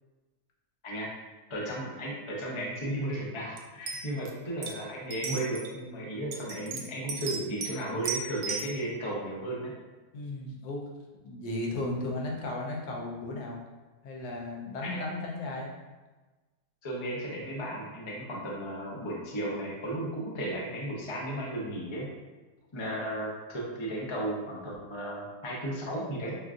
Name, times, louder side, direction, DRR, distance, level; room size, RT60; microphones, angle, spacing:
voice 1, 1.5-9.7 14.8-15.0 16.8-22.1 22.7-26.4, right 1 dB, 40° left, -4 dB, 0.4 m, -34 dB
sound 1, 3.6-3.7 3.9-4.3 4.6-4.7 5.1-5.7 6.3-7.8 8.0-8.7, right 5 dB, 80° right, 1.1 m, -35 dB
voice 2, 10.1-10.8 11.2-13.6 14.0-15.7 22.7-23.1, left 2 dB, 80° left, -2 dB, 1.3 m, -35 dB
5.4 x 2.5 x 2.4 m, 1.2 s
omnidirectional pair, 1.7 m